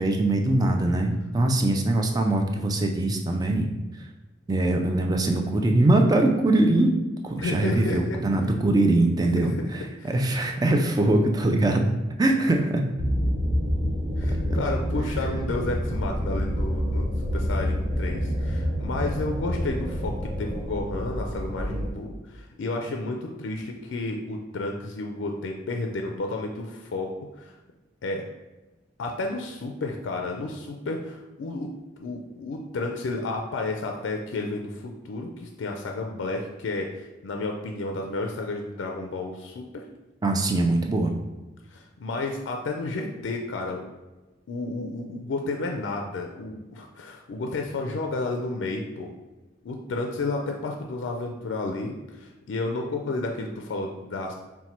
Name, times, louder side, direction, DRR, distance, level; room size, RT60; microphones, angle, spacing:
voice 1, 0.0-3.7 3.9-4.1 4.5-6.9 7.2-11.8 12.2-12.8 14.5-14.6 40.2-41.1, right 2 dB, 20° right, 3 dB, 0.3 m, -22 dB
voice 2, 7.4-8.2 10.0-10.1 14.2-27.1 27.4-27.6 28.0-28.2 29.0-31.7 32.0-39.8 41.7-43.8 44.5-49.1 49.6-54.3, left 2 dB, 75° left, 2 dB, 0.4 m, -31 dB
sound 1, 13.0-21.9, equal, 70° right, 0.8 m, -27 dB
4.2 x 2.2 x 4.2 m, 1.1 s
head